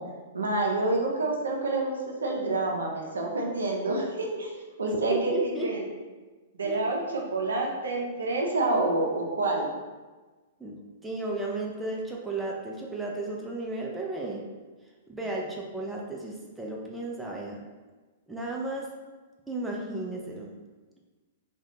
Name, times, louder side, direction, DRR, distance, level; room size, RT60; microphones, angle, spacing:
voice 1, 0.3-4.5 4.8-5.8 6.6-9.7, right 2 dB, 70° right, -1 dB, 0.5 m, -28 dB
voice 2, 4.9-5.7 6.6-6.8 10.6-14.4 15.1-17.6 18.3-18.9 19.5-20.5, right 2 dB, 5° right, -3 dB, 0.3 m, -34 dB
2.3 x 2.2 x 2.8 m, 1.3 s
figure-of-eight pair, 105°, 0 cm